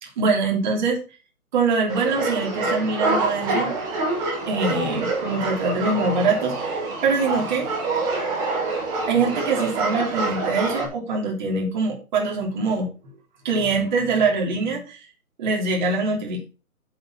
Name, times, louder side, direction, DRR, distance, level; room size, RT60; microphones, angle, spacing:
voice 1, 0.0-1.0 1.5-3.7 4.5-7.7 9.1-12.9 13.4-15.1 15.4-16.4, right 4 dB, 30° right, 0 dB, 3.3 m, -23 dB
sound 1, 1.9-10.9, right 3 dB, 10° right, 1.1 m, -26 dB
8.0 x 6.6 x 6.0 m, 0.34 s
hypercardioid pair, 160°, 44 cm